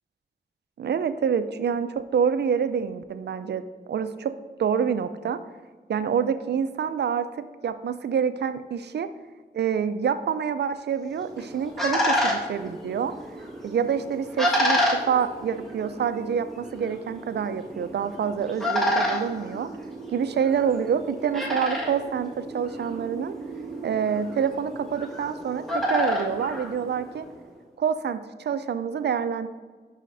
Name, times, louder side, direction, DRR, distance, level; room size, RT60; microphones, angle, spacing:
voice 1, 0.8-4.3 4.6-5.4 5.9-9.1 9.5-19.7 20.1-23.4 23.8-27.3 27.8-29.5, right 7 dB, 85° right, 11 dB, 0.4 m, -27 dB
sound 1, 11.1-27.4, equal, ahead, 1.6 m, -30 dB
9.6 x 5.6 x 2.6 m, 1.4 s
wide cardioid pair, 85°, 17 cm